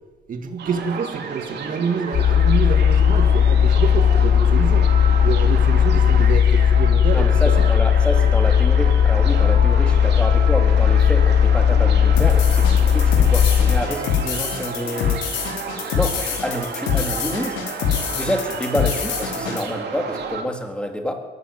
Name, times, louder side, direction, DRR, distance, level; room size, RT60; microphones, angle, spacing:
voice 1, 0.3-4.9 5.2-7.6, right 5 dB, 45° right, 6 dB, 2.0 m, -27 dB
sound 1, 0.6-20.4, right 5 dB, 60° right, 3.4 m, -32 dB
sound 2, 2.1-13.8, left 8 dB, 50° left, 1.6 m, -16 dB
voice 2, 7.1-15.2 15.9-17.6 18.1-21.1, equal, 5° left, 4 dB, 3.5 m, -27 dB
sound 3, 12.2-19.6, left 8 dB, 90° left, 4.4 m, -25 dB
22.5 x 13.5 x 9.1 m, 1.3 s
cardioid pair, 100°, 19 cm